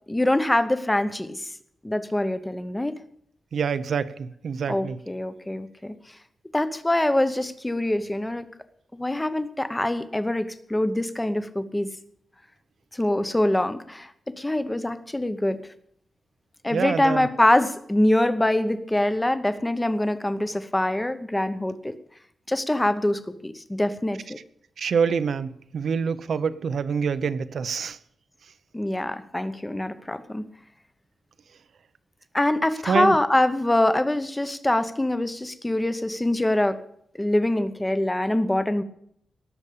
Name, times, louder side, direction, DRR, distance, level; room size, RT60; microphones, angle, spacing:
voice 1, 0.1-1.5 1.8-3.0 4.7-5.9 6.5-8.5 9.0-11.9 12.9-15.6 16.6-22.0 22.5-24.4 28.7-30.4 32.3-36.8 37.2-38.8, left 1 dB, 10° left, 11 dB, 0.9 m, -24 dB
voice 2, 3.5-5.0 16.7-17.3 24.8-28.0 32.9-33.2, right 6 dB, 60° right, 13 dB, 0.8 m, -26 dB
18.0 x 7.2 x 8.5 m, 0.70 s
wide cardioid pair, 165°, 0 cm